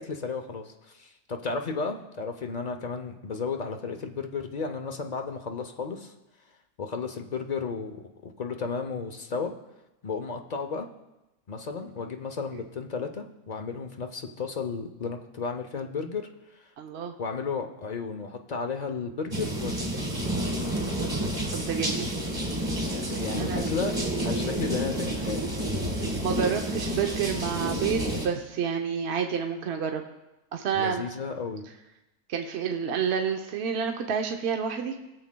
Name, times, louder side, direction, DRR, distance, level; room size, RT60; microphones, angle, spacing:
voice 1, 0.0-6.1 6.8-9.5 10.0-10.9 11.5-16.6 17.2-20.0 22.9-23.9 24.2-25.4 30.7-31.7, left 5 dB, 50° left, 5 dB, 0.5 m, -33 dB
voice 2, 16.8-17.1 21.5-22.1 23.4-23.7 26.2-30.0 30.5-31.1 32.3-34.9, right 7 dB, 55° right, 3 dB, 0.9 m, -29 dB
sound 1, 19.3-28.3, right 1 dB, 20° right, 1.4 m, -29 dB
20.5 x 7.2 x 2.2 m, 0.97 s
omnidirectional pair, 1.5 m